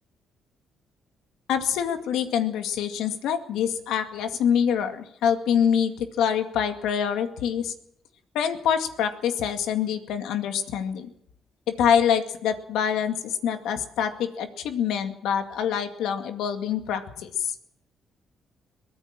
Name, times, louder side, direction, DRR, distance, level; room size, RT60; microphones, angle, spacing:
voice 1, 1.5-7.7 8.3-11.1 11.7-17.5, left 8 dB, 90° left, 7 dB, 2.1 m, -25 dB
23.0 x 16.5 x 7.5 m, 0.75 s
cardioid pair, 90°, 0 cm